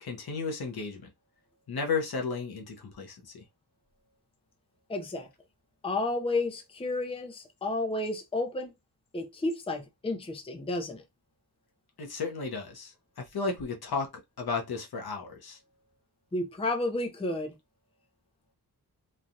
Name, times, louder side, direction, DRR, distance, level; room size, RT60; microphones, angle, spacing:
voice 1, 0.0-1.1 1.7-3.4 12.0-14.1 14.4-15.6, left 4 dB, 70° left, 0.9 m, -34 dB
voice 2, 4.9-5.3 5.8-8.7 9.1-11.0 16.3-17.6, left 2 dB, 15° left, 0.5 m, -31 dB
3.2 x 2.3 x 2.6 m
wide cardioid pair, 130°, 38 cm